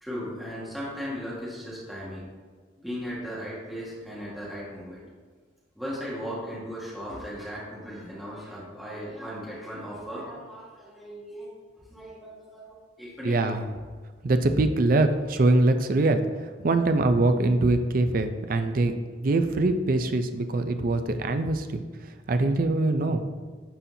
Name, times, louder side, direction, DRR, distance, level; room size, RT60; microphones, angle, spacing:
voice 1, 0.0-2.2 2.8-5.0 5.8-11.5 11.9-12.3 12.7-13.6, equal, ahead, -8 dB, 1.6 m, -37 dB
voice 2, 13.2-13.7 14.2-18.9 19.2-21.8 22.3-23.2, right 2 dB, 45° right, 8 dB, 0.4 m, -23 dB
11.0 x 4.2 x 2.7 m, 1.5 s
head